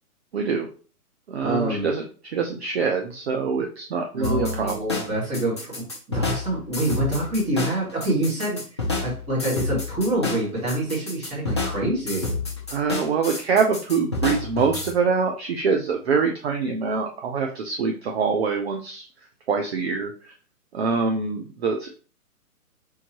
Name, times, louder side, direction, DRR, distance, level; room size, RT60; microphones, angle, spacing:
voice 1, 0.3-0.7 1.3-5.1 12.7-19.1 19.5-20.3 20.7-22.0, right 5 dB, 45° right, 3 dB, 0.6 m, -25 dB
voice 2, 1.4-1.9 4.1-12.4, right 1 dB, 15° right, -5 dB, 1.7 m, -26 dB
sound 1, 4.2-14.9, left 3 dB, 20° left, 0.4 m, -29 dB
4.7 x 3.5 x 2.9 m, 0.39 s
hypercardioid pair, 145°, 46 cm